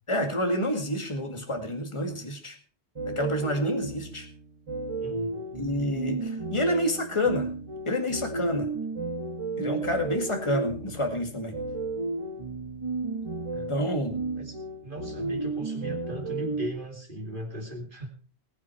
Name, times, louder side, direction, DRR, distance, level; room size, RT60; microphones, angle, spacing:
voice 1, 0.1-2.6 3.0-4.3 5.5-7.5 7.9-8.7 9.6-11.5 13.7-14.1, left 1 dB, 25° left, 5 dB, 2.1 m, -28 dB
sound 1, 2.9-16.7, right 3 dB, 30° right, 1.2 m, -33 dB
voice 2, 5.0-5.4 13.5-13.7 14.3-18.1, right 1 dB, 45° right, 3 dB, 2.8 m, -38 dB
20.0 x 8.6 x 4.5 m, 0.37 s
omnidirectional pair, 1.2 m